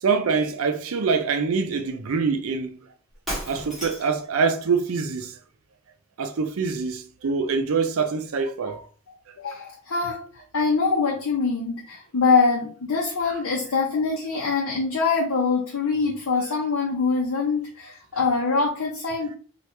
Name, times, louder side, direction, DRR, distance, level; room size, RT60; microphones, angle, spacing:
voice 1, 0.0-2.8 3.5-5.3 6.2-8.8, right 5 dB, 85° right, 0.5 m, -24 dB
Shatter, 3.3-4.2, equal, ahead, 1.1 m, -33 dB
voice 2, 9.4-10.2 10.5-19.3, left 4 dB, 90° left, 0.6 m, -24 dB
2.9 x 2.4 x 3.2 m
head